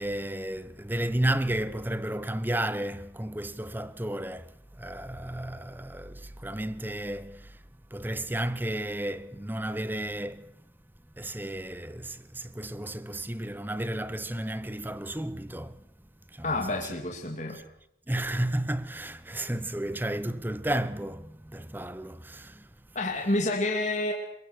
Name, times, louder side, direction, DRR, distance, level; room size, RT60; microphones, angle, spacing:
voice 1, 0.0-7.6 7.9-10.5 11.2-15.8 16.3-16.5 18.1-22.7, right 1 dB, 10° right, 0.8 m, -32 dB
voice 2, 16.4-17.6 22.9-24.1, left 2 dB, 40° left, 2.7 m, -28 dB
22.5 x 21.5 x 6.3 m
head